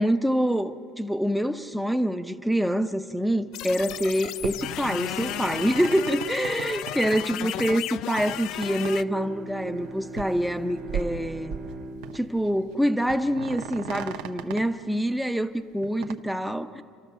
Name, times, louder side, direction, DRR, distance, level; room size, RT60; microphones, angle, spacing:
voice 1, 0.0-11.5 12.1-16.8, equal, ahead, 0.7 m, -26 dB
sound 1, 3.5-9.0, left 13 dB, 55° left, 0.4 m, -34 dB
sound 2, 3.8-4.1 4.4-7.2 7.6-7.8 8.2-8.3 8.6-8.9 9.2-9.3 9.8-9.9 10.1-10.4 10.8-11.7 12.0-12.5 12.7-12.8 13.1-14.6 15.8-16.2, right 8 dB, 75° right, 1.1 m, -36 dB
Bowed string instrument, 8.5-13.3, right 2 dB, 35° right, 1.2 m, -41 dB
29.5 x 13.0 x 7.0 m
cardioid pair, 155°, 0 cm